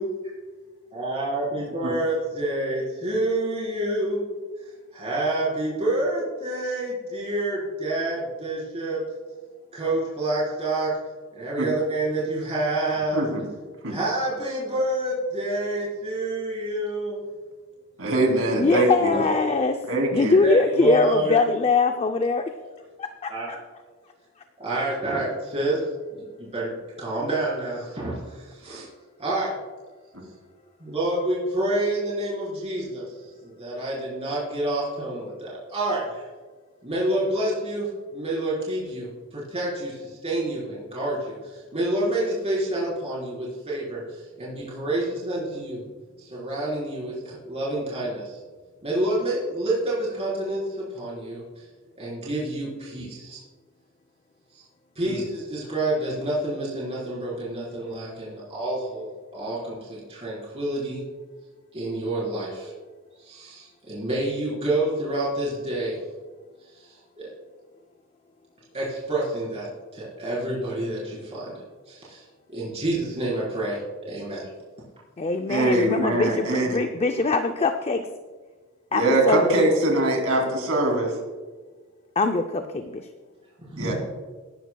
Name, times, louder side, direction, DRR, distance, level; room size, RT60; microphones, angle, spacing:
voice 1, 0.9-4.2 4.9-9.0 9.7-10.9 11.3-13.3 13.9-17.2 20.4-21.4 23.3-23.5 24.6-28.9 29.2-29.5 30.8-33.1 33.4-36.2 36.8-45.8 46.2-48.4 48.8-51.6 52.0-53.4 54.5-54.6 55.0-61.0 61.7-62.7 63.2-66.0 66.7-67.3 68.7-71.6 71.9-73.8 74.1-74.5 83.6-83.9, right 1 dB, 30° right, -7 dB, 4.2 m, -28 dB
voice 2, 18.0-19.2 19.8-20.4 55.1-55.2 75.5-76.8 78.9-81.2 83.8-83.9, right 1 dB, 70° right, 1 dB, 3.0 m, -23 dB
voice 3, 18.5-19.8 20.1-22.4 75.2-78.1 78.9-79.5 82.2-83.1, left 3 dB, 30° left, 6 dB, 0.5 m, -22 dB
17.5 x 12.0 x 2.3 m, 1.4 s
head